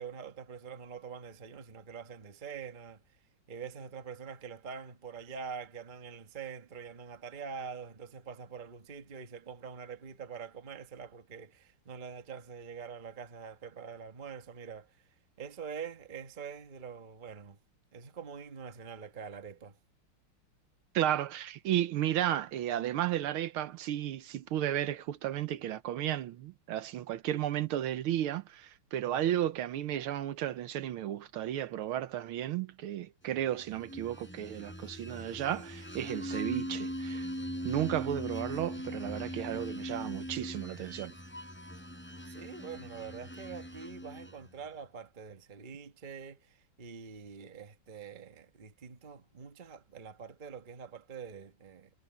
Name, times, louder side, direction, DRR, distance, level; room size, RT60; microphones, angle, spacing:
voice 1, 0.0-3.0 3.5-15.0 15.4-17.6 17.9-19.8 42.3-51.9, right 6 dB, 30° right, 1.1 m, -45 dB
voice 2, 20.9-37.3 37.6-41.1, right 12 dB, 75° right, 1.6 m, -33 dB
sound 1, 33.7-44.5, equal, 5° left, 5.7 m, -40 dB
omnidirectional pair, 2.4 m